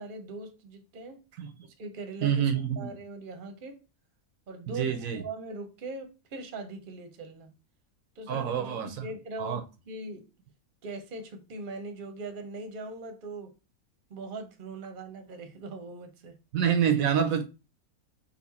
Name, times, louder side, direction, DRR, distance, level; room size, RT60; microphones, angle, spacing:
voice 1, 0.0-1.2 1.8-3.8 4.5-7.5 8.2-10.3 10.8-13.5 14.1-16.4, right 3 dB, 45° right, 0.8 m, -41 dB
voice 2, 2.2-2.9 4.7-5.2 8.3-9.0 9.4-9.6 16.5-17.4, right 8 dB, 75° right, 1.0 m, -27 dB
4.2 x 2.5 x 4.1 m
omnidirectional pair, 1.5 m